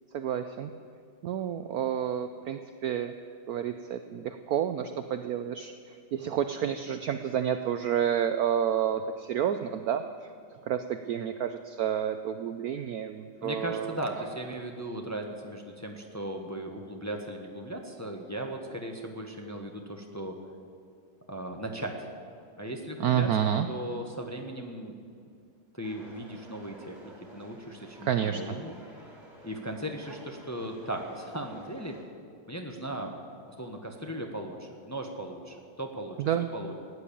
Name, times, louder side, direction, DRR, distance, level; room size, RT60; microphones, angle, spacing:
voice 1, 0.1-0.7 1.2-3.1 3.5-5.7 6.1-10.0 10.6-14.0 23.0-23.7 28.0-28.4 36.2-36.5, right 9 dB, 70° right, 9 dB, 0.9 m, -29 dB
voice 2, 13.4-20.4 21.3-21.9 22.6-23.3 23.7-24.9 25.7-28.7 29.4-31.9 32.5-33.1 33.6-36.2 36.5-36.8, right 1 dB, 10° left, 2 dB, 1.0 m, -37 dB
sound 1, 25.8-32.0, right 1 dB, 15° right, 3.1 m, -51 dB
16.5 x 10.0 x 8.6 m, 2.3 s
omnidirectional pair, 2.1 m